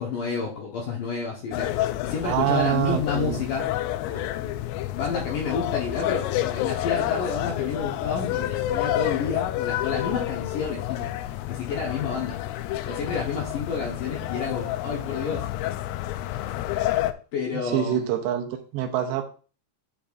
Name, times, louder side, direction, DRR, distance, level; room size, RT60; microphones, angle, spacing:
voice 1, 0.0-3.6 4.1-4.5 4.9-12.4 12.8-15.5 17.3-18.2, left 5 dB, 65° left, -2 dB, 2.2 m, -30 dB
sound 1, 1.5-17.1, left 14 dB, 85° left, 2.4 m, -29 dB
voice 2, 2.2-3.4 17.5-19.2, right 10 dB, 80° right, 5 dB, 2.8 m, -25 dB
11.5 x 5.4 x 2.5 m, 0.37 s
omnidirectional pair, 5.2 m